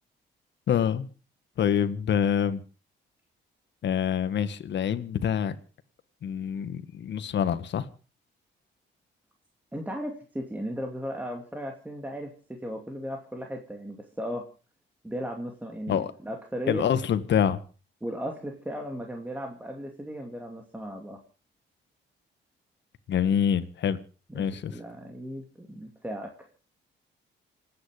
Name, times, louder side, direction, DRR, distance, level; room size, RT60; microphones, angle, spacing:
voice 1, 0.7-1.1 1.6-2.6 3.8-5.6 6.2-7.8 15.9-16.1 16.7-17.6 23.1-24.0 24.3-24.8, left 8 dB, 65° left, 12 dB, 1.7 m, -26 dB
voice 2, 9.7-14.5 15.0-16.9 18.0-21.2 24.3-26.5, equal, 10° right, 2 dB, 2.6 m, -36 dB
27.0 x 9.7 x 5.0 m, 0.37 s
cardioid pair, 90°, 20 cm